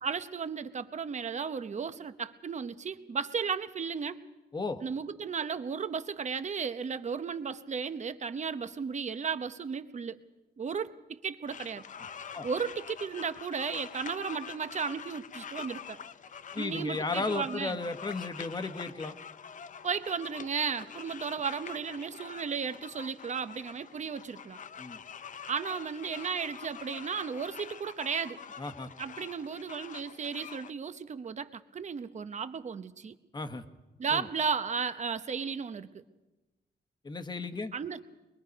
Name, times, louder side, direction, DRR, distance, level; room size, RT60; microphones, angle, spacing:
voice 1, 0.0-4.2 4.8-10.2 10.6-11.8 12.4-16.0 16.6-17.8 19.8-24.6 25.5-28.4 29.0-33.1 34.0-36.0 37.7-38.0, right 6 dB, 40° right, 11 dB, 0.9 m, -34 dB
sound 1, 11.5-30.7, left 7 dB, 45° left, 0.6 m, -46 dB
voice 2, 16.5-19.1 24.8-25.0 28.6-28.9 33.3-33.6 34.1-34.3 37.0-37.7, left 3 dB, 25° left, 9 dB, 1.2 m, -34 dB
23.0 x 22.0 x 5.3 m, 1.1 s
cardioid pair, 115°, 18 cm